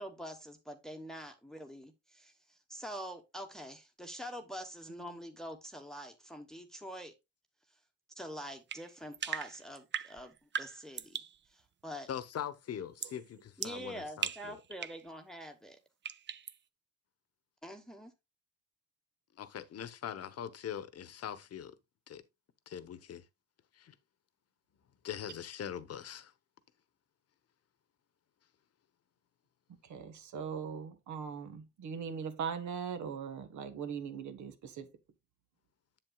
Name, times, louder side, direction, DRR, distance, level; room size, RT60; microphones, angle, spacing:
voice 1, 0.0-7.1 7.7-7.8 8.2-12.1 13.6-15.8 17.6-18.1, equal, ahead, 1.1 m, -45 dB
sound 1, 8.7-11.4 13.0-13.2 13.6-15.1 16.0-16.6, right 8 dB, 40° right, 0.6 m, -39 dB
voice 2, 12.1-14.6 19.4-21.7 22.1-22.2 22.7-23.2 23.8-23.9 25.0-26.3, left 9 dB, 55° left, 1.0 m, -42 dB
voice 3, 29.9-34.9, right 6 dB, 70° right, 1.3 m, -40 dB
7.7 x 7.5 x 2.3 m
cardioid pair, 90°, 30 cm